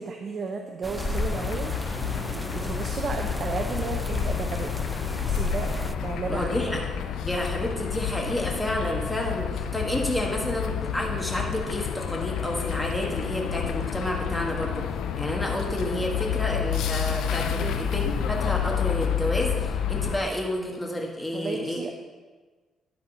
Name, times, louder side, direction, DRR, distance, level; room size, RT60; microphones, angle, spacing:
voice 1, 0.0-1.7 2.3-4.7 5.1-5.7 6.0-6.8 17.6-17.8 21.3-22.0, right 4 dB, 50° right, 4 dB, 0.7 m, -33 dB
sound 1, 0.8-6.0, right 1 dB, 10° right, 0.3 m, -35 dB
sound 2, 0.9-20.2, left 8 dB, 80° left, 0.5 m, -29 dB
sound 3, 5.2-11.6, left 3 dB, 40° left, 2.0 m, -44 dB
voice 2, 6.3-6.8 7.2-14.8 15.2-21.8, left 1 dB, 10° left, -1 dB, 1.7 m, -30 dB
11.0 x 4.2 x 5.5 m, 1.4 s
cardioid pair, 90°, 0 cm